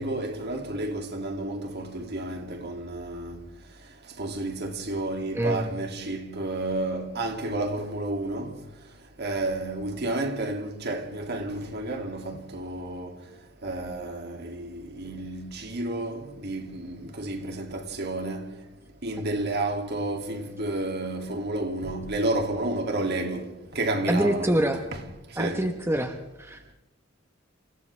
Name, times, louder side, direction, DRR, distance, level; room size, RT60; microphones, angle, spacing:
voice 1, 0.0-3.4 4.2-8.6 9.2-13.1 13.6-18.5 19.0-25.0 25.4-25.7, right 2 dB, 55° right, 2.6 m, -31 dB
voice 2, 5.3-5.7 24.1-24.8 25.4-26.6, right 1 dB, 15° right, 1.1 m, -25 dB
29.5 x 27.5 x 3.4 m
head